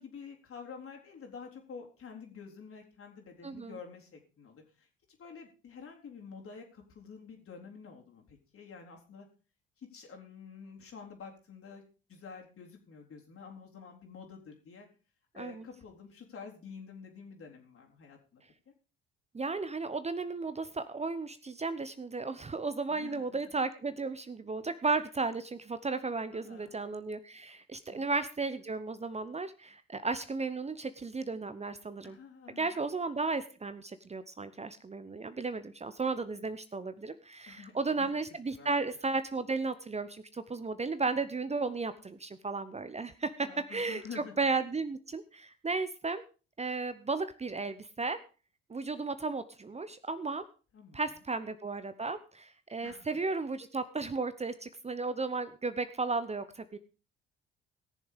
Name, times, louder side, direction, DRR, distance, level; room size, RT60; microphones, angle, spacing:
voice 1, 0.0-4.9 5.2-9.3 9.8-11.8 12.1-14.9 15.3-18.4 22.9-23.2 26.3-26.8 27.9-28.0 32.0-32.7 37.5-38.1 38.6-38.7 43.4-44.3 50.7-51.0 52.8-53.1, left 5 dB, 50° left, 2 dB, 3.8 m, -49 dB
voice 2, 3.4-3.8 15.3-15.7 19.3-32.2 32.6-46.2 46.6-48.2 48.7-50.4 50.9-56.8, right 3 dB, 20° right, 12 dB, 1.0 m, -34 dB
18.0 x 7.1 x 5.1 m, 0.35 s
hypercardioid pair, 55°, 29 cm